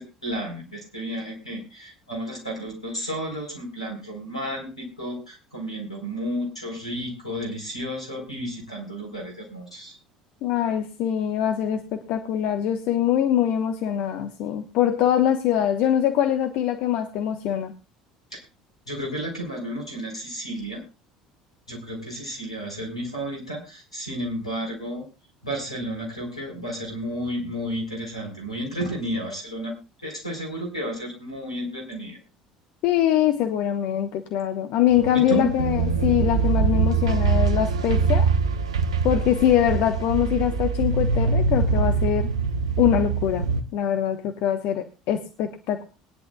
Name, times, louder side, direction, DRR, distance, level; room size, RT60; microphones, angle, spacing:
voice 1, 0.0-9.9 18.3-18.4 18.9-20.8 21.7-25.0 25.4-29.7 30.0-32.2 35.3-35.5, equal, 85° left, 2 dB, 4.4 m, -32 dB
voice 2, 10.4-17.7 32.8-38.3 39.0-42.3 42.8-43.4 43.7-45.8, left 10 dB, 55° left, 7 dB, 1.2 m, -23 dB
sound 1, 34.9-43.6, right 4 dB, 75° right, 1.0 m, -23 dB
21.5 x 10.5 x 2.4 m, 0.31 s
figure-of-eight pair, 60°, 3 cm